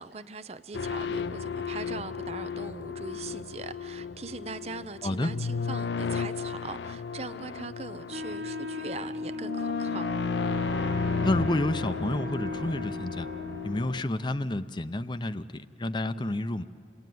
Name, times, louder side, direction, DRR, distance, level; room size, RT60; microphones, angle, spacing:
voice 1, 0.0-10.0, right 4 dB, 35° right, 0.6 m, -41 dB
sound 1, 0.7-14.0, left 5 dB, 75° left, 0.5 m, -34 dB
voice 2, 5.0-5.3 11.2-13.3 13.6-16.6, left 1 dB, 25° left, 0.6 m, -30 dB
Wind instrument woodwind instrument, 8.1-14.0, left 3 dB, 60° right, 0.8 m, -37 dB
29.0 x 19.5 x 9.3 m
head